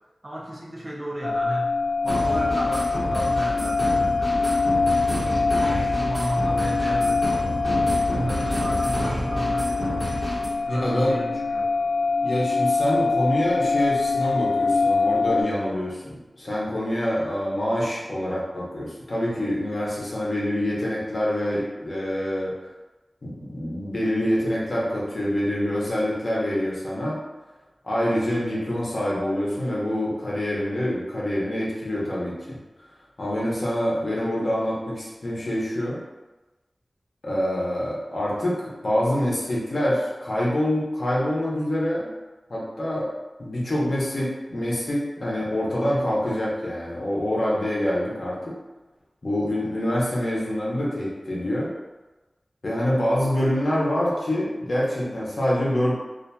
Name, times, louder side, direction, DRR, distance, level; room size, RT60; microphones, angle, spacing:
voice 1, 0.2-4.7 5.3-7.9 8.1-10.0 10.7-11.7, right 1 dB, 35° right, -4 dB, 0.5 m, -33 dB
sound 1, 1.2-15.4, left 4 dB, 90° left, 0.3 m, -24 dB
sound 2, 2.0-10.5, equal, 5° left, 1.1 m, -29 dB
voice 2, 10.7-11.2 12.2-22.5 23.2-27.2 27.8-32.6 33.2-36.0 37.2-42.1 42.5-43.1 43.4-48.6 49.2-51.7 52.6-55.9, left 1 dB, 60° left, -6 dB, 0.7 m, -26 dB
2.7 x 2.5 x 2.2 m, 1.1 s
wide cardioid pair, 75°, 0 cm